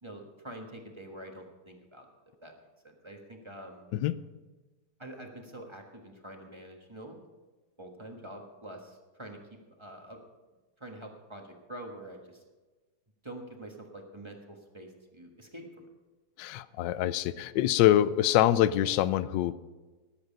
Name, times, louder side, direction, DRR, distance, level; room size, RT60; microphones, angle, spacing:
voice 1, 0.0-2.1 2.4-2.5 3.0-3.9 5.0-7.3 7.8-9.4 9.8-10.2 10.8-12.4 13.2-15.9, right 1 dB, 15° right, 2 dB, 1.2 m, -46 dB
voice 2, 16.4-19.5, left 13 dB, 75° left, 16 dB, 1.0 m, -25 dB
19.0 x 8.0 x 5.3 m, 1.3 s
omnidirectional pair, 2.3 m